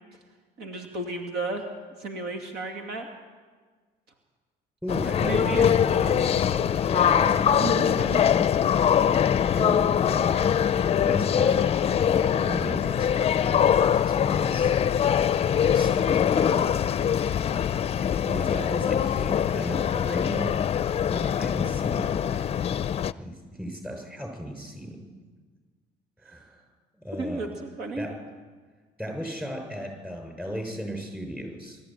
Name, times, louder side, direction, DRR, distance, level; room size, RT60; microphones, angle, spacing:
voice 1, 0.6-1.6 2.0-3.1 5.2-5.7 7.6-8.2 27.2-28.1, right 3 dB, 75° right, 3 dB, 2.5 m, -33 dB
voice 2, 4.8-8.4 9.3-10.5 10.9-13.1 13.4-14.7 15.6-17.3 17.7-20.5 21.0-22.4 23.2-25.0 26.2-26.6 27.0-27.4 28.0-28.1 29.0-31.8, equal, 10° right, 3 dB, 6.5 m, -35 dB
sound 1, 4.9-23.1, left 9 dB, 35° left, 0.5 m, -23 dB
21.5 x 14.0 x 9.1 m, 1.5 s
cardioid pair, 110°, 17 cm